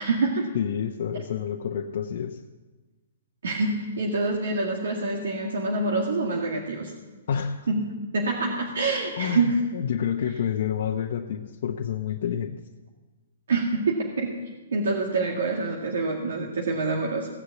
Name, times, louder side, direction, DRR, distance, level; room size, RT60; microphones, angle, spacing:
voice 1, 0.0-0.5 3.4-6.9 7.7-7.9 8.1-9.6 13.5-14.3 14.7-17.3, right 3 dB, 75° right, -1 dB, 2.0 m, -26 dB
voice 2, 0.5-2.4 7.3-7.7 9.2-12.6, left 8 dB, 60° left, 2 dB, 0.8 m, -29 dB
16.5 x 6.6 x 8.4 m, 1.3 s
hypercardioid pair, 145°, 0 cm